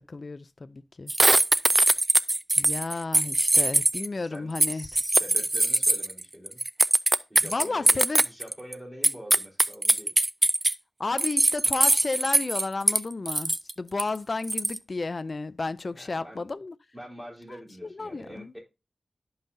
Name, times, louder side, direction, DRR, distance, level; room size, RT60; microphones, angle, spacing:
voice 1, 0.1-1.1 2.6-4.9 7.4-8.2 11.0-16.8 17.9-18.5, left 3 dB, 50° left, 0.4 m, -32 dB
sound 1, 1.1-4.1 4.6-8.7 9.0-10.7 11.2-13.0 13.3-13.7 14.0-14.1 14.4-14.8, right 2 dB, 25° right, 0.4 m, -22 dB
voice 2, 4.2-6.6 7.3-10.1 15.9-16.5 16.9-18.6, equal, 10° right, 3.8 m, -45 dB
11.5 x 5.6 x 2.6 m
wide cardioid pair, 80°, 0 cm